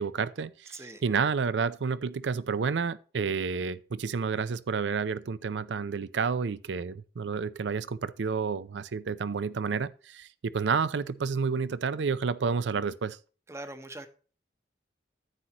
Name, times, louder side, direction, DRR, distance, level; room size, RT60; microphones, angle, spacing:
voice 1, 0.0-13.2, right 5 dB, 90° right, 0.5 m, -30 dB
voice 2, 0.7-1.0 13.5-14.1, right 2 dB, 15° right, 0.8 m, -41 dB
9.8 x 7.8 x 2.9 m
head